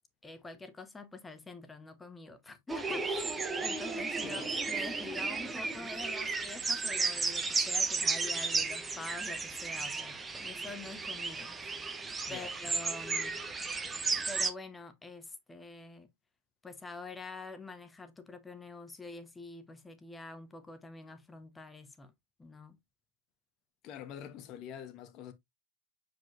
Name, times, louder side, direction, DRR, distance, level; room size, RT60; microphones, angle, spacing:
voice 1, 0.2-3.3 3.6-4.4 4.7-13.4 14.3-16.1 16.6-22.1 22.4-22.8, left 3 dB, 10° left, 1.1 m, -46 dB
sound 1, 2.7-14.5, right 4 dB, 15° right, 1.0 m, -34 dB
voice 2, 4.2-4.5 12.3-12.5 23.8-25.3, left 9 dB, 35° left, 1.1 m, -45 dB
7.6 x 5.0 x 2.6 m
figure-of-eight pair, 90°, 0 cm